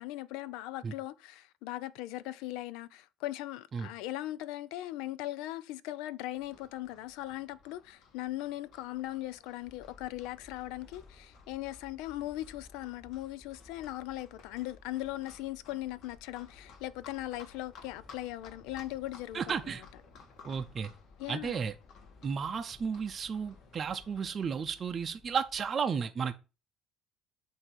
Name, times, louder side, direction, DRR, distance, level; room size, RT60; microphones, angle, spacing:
voice 1, 0.0-19.8 21.2-21.6, left 15 dB, 90° left, 0.4 m, -39 dB
Livestock farm animals working animals, 6.3-24.5, left 5 dB, 60° left, 1.5 m, -57 dB
sound 1, 9.6-25.7, left 4 dB, 35° left, 4.0 m, -59 dB
voice 2, 19.3-19.8 20.4-20.9 21.3-21.7 22.2-26.3, right 6 dB, 35° right, 0.5 m, -33 dB
7.9 x 2.7 x 5.8 m
cardioid pair, 120°, 0 cm